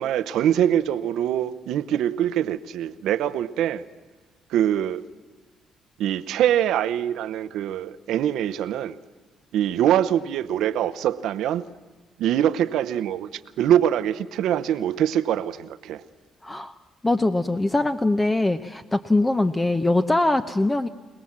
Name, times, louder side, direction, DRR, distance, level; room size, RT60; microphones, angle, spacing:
voice 1, 0.0-3.8 4.5-5.0 6.0-9.0 9.5-11.6 12.2-16.0, right 10 dB, 85° right, 0.8 m, -23 dB
voice 2, 16.4-16.8 17.0-20.9, left 2 dB, 15° left, 0.7 m, -22 dB
26.0 x 18.5 x 7.4 m
cardioid pair, 90°, 0 cm